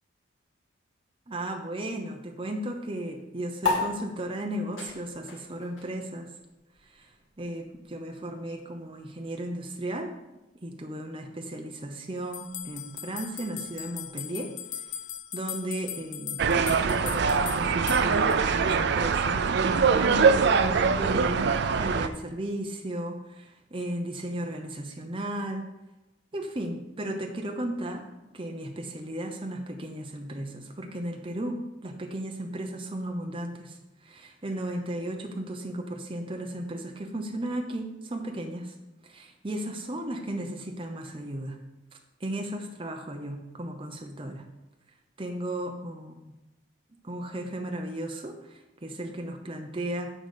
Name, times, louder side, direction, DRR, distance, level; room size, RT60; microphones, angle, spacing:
voice 1, 1.3-6.3 6.8-10.1 10.6-14.8 15.3-25.7 26.3-28.1 28.3-38.8 39.0-41.6 42.2-44.4 45.2-46.3 47.0-50.1, right 1 dB, 25° right, 3 dB, 0.8 m, -35 dB
sound 1, 3.6-10.4, left 3 dB, 75° left, 2.2 m, -36 dB
sound 2, 12.3-18.4, left 10 dB, 40° left, 0.4 m, -39 dB
sound 3, 16.4-22.1, right 5 dB, 60° right, 0.4 m, -23 dB
9.9 x 4.0 x 6.6 m, 1.0 s
head